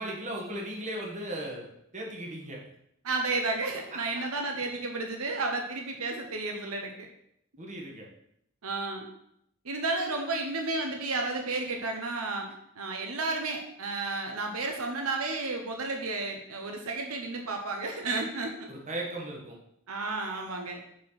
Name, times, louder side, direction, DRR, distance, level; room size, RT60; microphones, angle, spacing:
voice 1, 0.0-2.6 3.9-4.3 7.6-8.1 18.7-19.6, right 1 dB, 35° right, -1 dB, 1.8 m, -37 dB
voice 2, 3.0-7.1 8.6-9.1 9.6-12.5 12.7-18.7 19.9-20.8, right 3 dB, 90° right, 3 dB, 1.1 m, -32 dB
7.3 x 4.4 x 5.8 m, 0.75 s
head